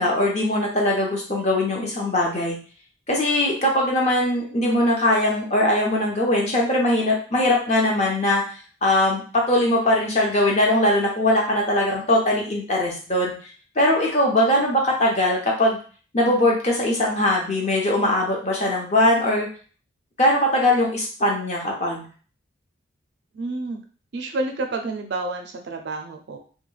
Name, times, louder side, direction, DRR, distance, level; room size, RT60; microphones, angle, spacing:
voice 1, 0.0-2.6 3.1-8.4 8.8-13.3 13.8-15.8 16.1-19.5 20.2-22.1, left 1 dB, 35° left, -1 dB, 0.7 m, -21 dB
voice 2, 23.3-23.8 24.1-26.4, right 2 dB, 55° right, 4 dB, 0.4 m, -29 dB
2.2 x 2.2 x 3.1 m, 0.40 s
head